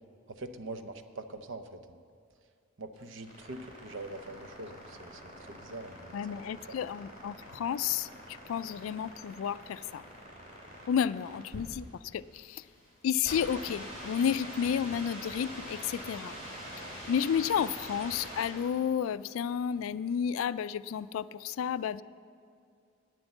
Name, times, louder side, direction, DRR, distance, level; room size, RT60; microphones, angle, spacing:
voice 1, 0.3-2.0 2.8-6.8, right 2 dB, 65° right, 9 dB, 0.7 m, -44 dB
sound 1, 2.9-18.8, equal, 35° right, 2.6 m, -45 dB
voice 2, 6.1-10.0 10.9-12.6 13.0-16.3 17.1-22.0, left 8 dB, 75° left, 17 dB, 0.3 m, -31 dB
9.9 x 8.0 x 7.9 m, 2.3 s
head